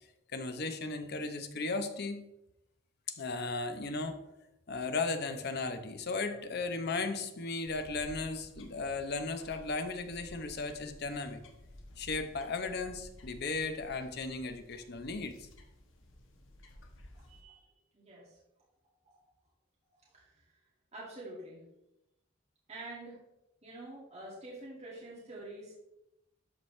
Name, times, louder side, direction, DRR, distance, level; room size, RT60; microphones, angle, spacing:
voice 1, 0.3-2.2 3.1-4.3 4.7-11.4 12.0-15.5, left 3 dB, 55° left, 8 dB, 0.8 m, -36 dB
sound 1, 7.6-17.4, left 1 dB, 75° left, 1.2 m, -54 dB
voice 2, 17.3-17.7 17.9-18.4 19.0-19.2 20.0-20.4 20.9-21.6 22.7-23.2 23.6-25.7, right 2 dB, 35° right, -6 dB, 2.3 m, -47 dB
12.5 x 4.8 x 3.2 m, 0.87 s
head